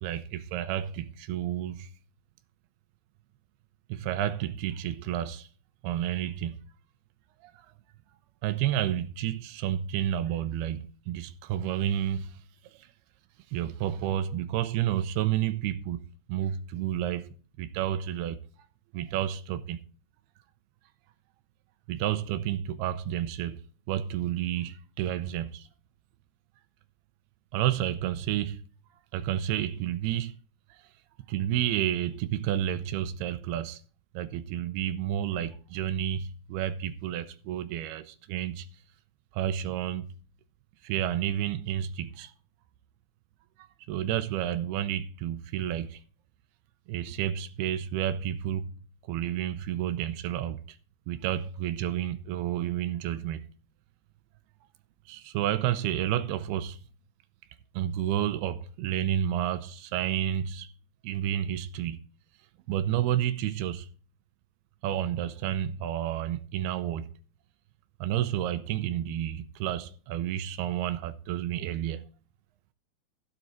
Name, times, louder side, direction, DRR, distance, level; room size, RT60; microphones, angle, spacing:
voice 1, 0.0-1.9 3.9-5.5 5.8-6.6 7.4-7.7 8.4-12.4 12.7-12.9 13.5-16.0 16.3-17.3 17.6-18.4 18.9-19.8 21.9-23.6 23.9-25.7 27.5-28.6 29.1-30.3 30.7-30.9 31.3-33.8 34.1-38.7 39.3-40.1 40.8-42.3 43.6-46.0 46.9-48.7 49.0-50.8 51.1-53.5 55.1-56.8 57.7-60.7 61.0-62.0 62.7-63.9 64.8-67.1 68.0-72.0, right 11 dB, 90° right, 2.8 m, -30 dB
13.0 x 8.8 x 4.3 m
omnidirectional pair, 4.5 m